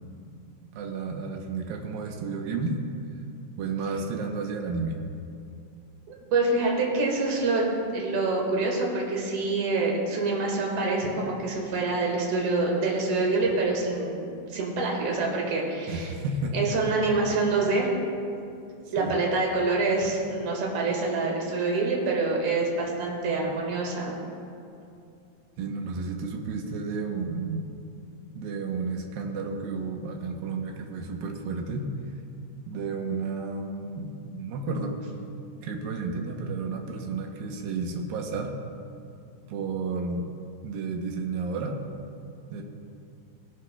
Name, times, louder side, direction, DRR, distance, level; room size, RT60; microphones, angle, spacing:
voice 1, 0.7-2.8 3.6-5.0 15.9-16.7 18.9-19.1 25.6-27.7 28.3-31.9 32.7-35.0 35.6-38.5 39.5-40.3 40.6-41.8 42.5-42.6, right 4 dB, 90° right, 2 dB, 2.7 m, -32 dB
voice 2, 6.1-7.6 7.9-16.1 16.5-17.9 18.9-24.2, right 3 dB, 65° right, -2 dB, 3.1 m, -26 dB
18.0 x 12.0 x 2.3 m, 2.5 s
omnidirectional pair, 4.0 m